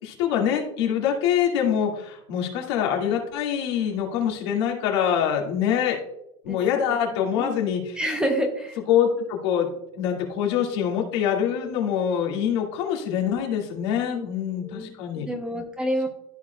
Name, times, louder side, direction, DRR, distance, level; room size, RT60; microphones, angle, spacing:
voice 1, 0.0-6.0 6.4-8.0 8.9-9.7 9.9-15.3, left 8 dB, 70° left, 0 dB, 2.1 m, -24 dB
voice 2, 6.5-6.8 7.1-7.6 8.0-8.8 14.0-14.3 14.6-16.1, equal, 5° right, 4 dB, 0.8 m, -29 dB
13.5 x 4.8 x 2.3 m, 0.80 s
supercardioid pair, 150°, 14 cm